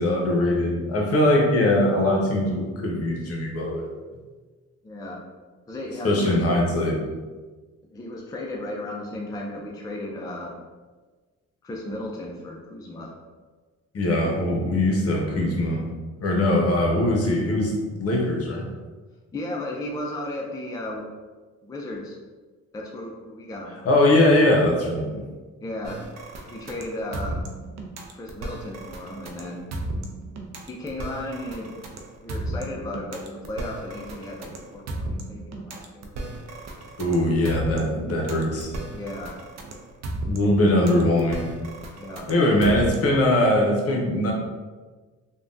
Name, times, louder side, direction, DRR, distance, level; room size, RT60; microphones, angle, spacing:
voice 1, 0.0-3.9 6.0-7.0 13.9-15.8 16.2-18.7 23.8-25.2 37.0-38.7 40.2-41.5 42.3-44.3, left 1 dB, 50° left, 0 dB, 0.8 m, -21 dB
voice 2, 4.8-5.2 5.7-6.4 7.9-10.5 11.6-13.1 19.3-21.0 21.6-22.2 22.7-23.9 25.6-26.0 26.5-27.4 28.1-29.7 30.7-31.9 32.2-36.3 38.9-39.4 42.0-42.3, left 1 dB, 15° left, -1 dB, 0.4 m, -35 dB
sound 1, 25.8-43.2, right 2 dB, 60° right, 0.5 m, -34 dB
3.3 x 2.2 x 2.6 m, 1.4 s
cardioid pair, 90°, 30 cm